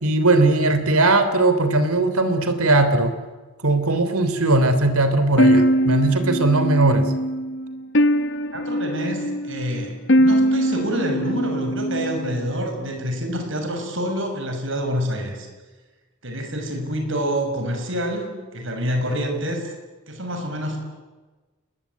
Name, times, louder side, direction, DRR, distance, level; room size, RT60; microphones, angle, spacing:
voice 1, 0.0-3.1 3.6-7.1, right 2 dB, 85° right, 11 dB, 3.4 m, -19 dB
sound 1, 5.4-12.5, equal, 55° left, 1.1 m, -21 dB
voice 2, 8.5-15.5 16.2-19.7 20.1-20.8, equal, 60° right, 4 dB, 6.4 m, -27 dB
29.5 x 21.0 x 9.6 m, 1.3 s
head